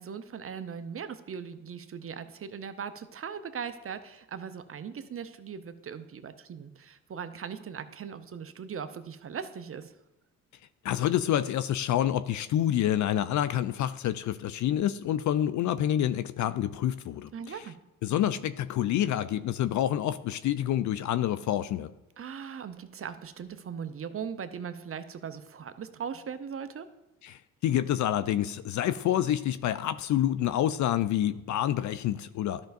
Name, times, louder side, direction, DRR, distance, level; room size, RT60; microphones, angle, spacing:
voice 1, 0.0-9.9 17.3-17.8 22.2-26.9, right 7 dB, 30° right, 11 dB, 0.7 m, -39 dB
voice 2, 10.8-17.6 18.0-21.9 27.2-32.6, left 11 dB, 45° left, 13 dB, 0.5 m, -28 dB
13.5 x 5.2 x 2.6 m, 0.96 s
hypercardioid pair, 50°, 43 cm